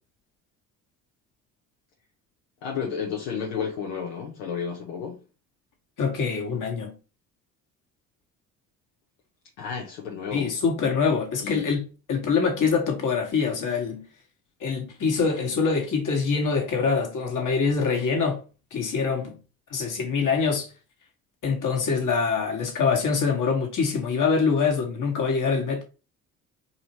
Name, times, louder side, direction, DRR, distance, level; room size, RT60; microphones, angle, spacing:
voice 1, 2.6-5.2 9.6-10.5 11.4-11.7, left 6 dB, 80° left, 1.1 m, -32 dB
voice 2, 6.0-6.9 10.3-14.0 14.6-18.4 18.7-19.4 19.7-20.7 21.4-25.8, left 5 dB, 50° left, 1.8 m, -24 dB
4.1 x 2.9 x 3.0 m
hypercardioid pair, 60°, 40 cm